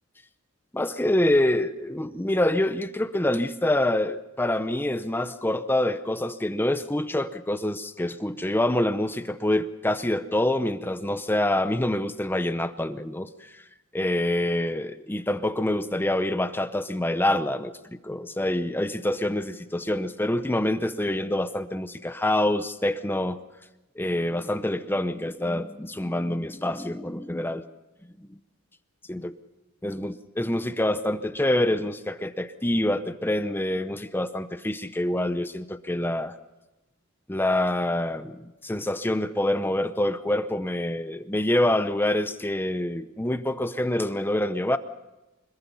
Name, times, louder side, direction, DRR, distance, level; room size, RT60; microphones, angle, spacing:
voice 1, 0.7-13.6 13.9-23.4 24.0-27.6 28.2-28.3 29.1-29.4 29.8-36.4 37.3-44.8, left 1 dB, 10° left, 11 dB, 0.7 m, -26 dB
25.5 x 21.5 x 5.5 m, 1.0 s
head